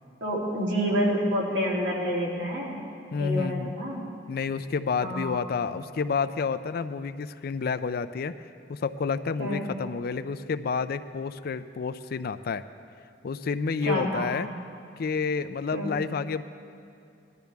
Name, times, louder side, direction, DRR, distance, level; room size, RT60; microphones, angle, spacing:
voice 1, 0.2-2.8 3.2-4.0 5.0-5.4 9.4-9.6 13.8-14.3 15.7-15.9, equal, 75° right, -4 dB, 2.9 m, -28 dB
voice 2, 3.1-3.7 4.3-8.4 8.7-12.6 13.2-14.5 15.0-16.4, left 5 dB, 60° left, 12 dB, 0.4 m, -29 dB
18.5 x 12.0 x 3.5 m, 2.5 s
head